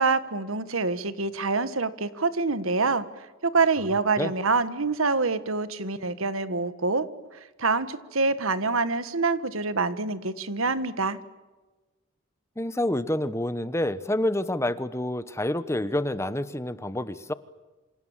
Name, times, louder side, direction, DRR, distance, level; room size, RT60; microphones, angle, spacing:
voice 1, 0.0-3.0 3.4-11.2, right 4 dB, 80° right, 13 dB, 1.6 m, -26 dB
voice 2, 12.6-17.3, left 1 dB, 15° left, 14 dB, 1.0 m, -28 dB
28.5 x 27.0 x 7.4 m, 1.2 s
head